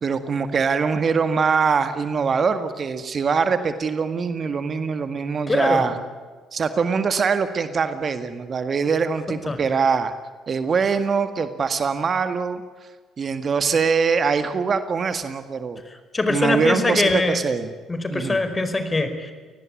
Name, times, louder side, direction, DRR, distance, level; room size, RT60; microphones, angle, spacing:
voice 1, 0.0-5.9 6.5-10.1 10.5-12.6 13.2-15.8 16.3-17.7 18.1-18.4, right 5 dB, 45° right, 10 dB, 1.8 m, -23 dB
voice 2, 5.5-6.0 9.5-9.6 15.9-17.4 17.9-19.3, left 2 dB, 25° left, 9 dB, 4.6 m, -23 dB
28.0 x 18.5 x 8.7 m, 1.4 s
hypercardioid pair, 50°, 0 cm